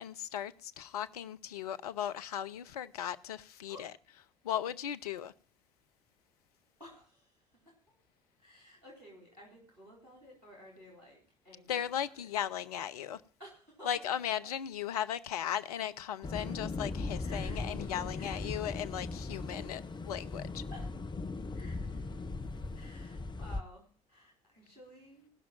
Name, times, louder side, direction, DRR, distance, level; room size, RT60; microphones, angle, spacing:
voice 1, 0.0-5.3 11.7-13.2 13.8-20.6, left 10 dB, 75° left, 0.6 m, -37 dB
voice 2, 6.8-8.0 8.4-11.2 11.4-12.3 13.4-14.1 16.5-16.6 17.0-18.6 20.7-20.9 21.5-22.1 22.7-25.3, equal, 90° right, 4.2 m, -55 dB
sound 1, 16.2-23.6, left 3 dB, 25° left, 0.8 m, -38 dB
17.0 x 6.1 x 7.3 m
figure-of-eight pair, 50°, 19 cm